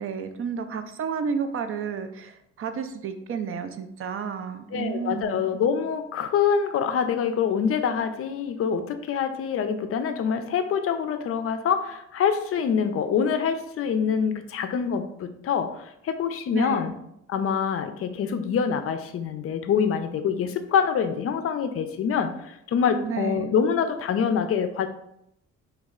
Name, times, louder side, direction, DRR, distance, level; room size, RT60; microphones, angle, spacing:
voice 1, 0.0-5.5 16.5-16.9 23.0-23.5, right 6 dB, 45° right, 8 dB, 0.4 m, -31 dB
voice 2, 4.7-16.9 17.3-24.9, left 7 dB, 50° left, 9 dB, 0.4 m, -25 dB
3.0 x 2.3 x 3.6 m, 0.78 s
cardioid pair, 90°, 30 cm